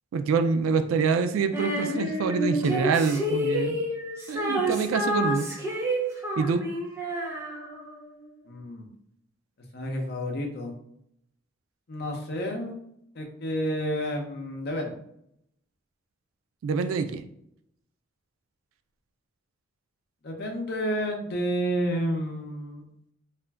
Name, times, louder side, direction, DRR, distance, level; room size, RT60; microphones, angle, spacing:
voice 1, 0.1-3.8 4.3-5.5 6.4-6.6 16.6-17.2, right 5 dB, 80° right, 9 dB, 0.3 m, -25 dB
Female singing, 1.5-8.0, equal, 15° right, 0.5 m, -29 dB
voice 2, 8.5-8.9 9.7-10.8 11.9-12.7 13.1-15.0 20.2-22.8, equal, 50° left, 2 dB, 0.6 m, -30 dB
2.4 x 2.1 x 3.3 m, 0.73 s
head